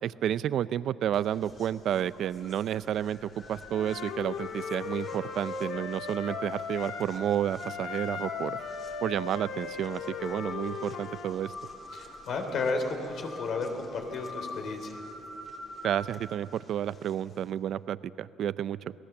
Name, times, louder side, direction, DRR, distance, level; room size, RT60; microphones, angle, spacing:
voice 1, 0.0-8.6 9.0-11.5 15.8-18.9, right 10 dB, 60° right, 16 dB, 0.5 m, -31 dB
sound 1, 1.1-17.5, left 2 dB, 35° left, 3.6 m, -46 dB
Wind instrument woodwind instrument, 3.7-7.1 7.6-11.3, left 6 dB, 75° left, 2.0 m, -37 dB
voice 2, 11.9-15.0, left 3 dB, 60° left, 4 dB, 3.5 m, -33 dB
29.5 x 18.0 x 7.2 m, 2.9 s
cardioid pair, 120°, 0 cm